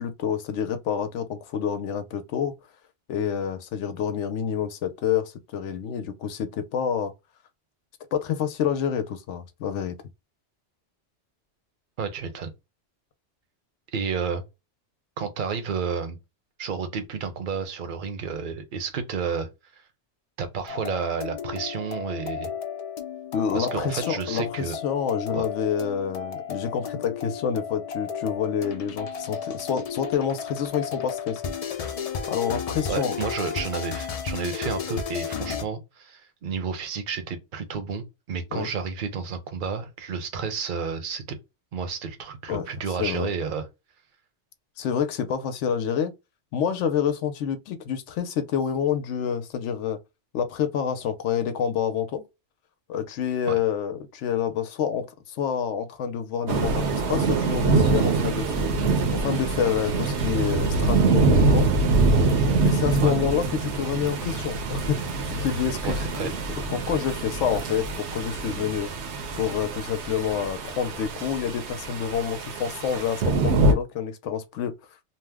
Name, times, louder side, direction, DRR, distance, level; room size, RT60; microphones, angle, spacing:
voice 1, 0.0-2.5 3.1-7.1 8.1-10.0 23.3-31.5 32.3-33.2 38.5-38.7 42.5-42.7 43.0-43.3 44.8-46.1 46.5-50.0 50.3-52.3 52.9-58.7 59.1-61.7 62.6-68.9 69.4-74.8, left 8 dB, 90° left, 0.9 m, -28 dB
voice 2, 12.0-12.5 13.9-14.4 15.2-16.2 16.6-19.5 20.4-22.5 23.5-24.8 25.3-25.4 32.9-41.4 41.7-43.7 53.5-53.6 63.0-63.1 65.8-66.3, right 6 dB, 55° right, 0.8 m, -31 dB
sound 1, 20.7-35.6, left 7 dB, 60° left, 0.4 m, -33 dB
sound 2, 56.5-73.7, right 3 dB, 75° right, 0.9 m, -24 dB
2.8 x 2.1 x 3.3 m
omnidirectional pair, 1.2 m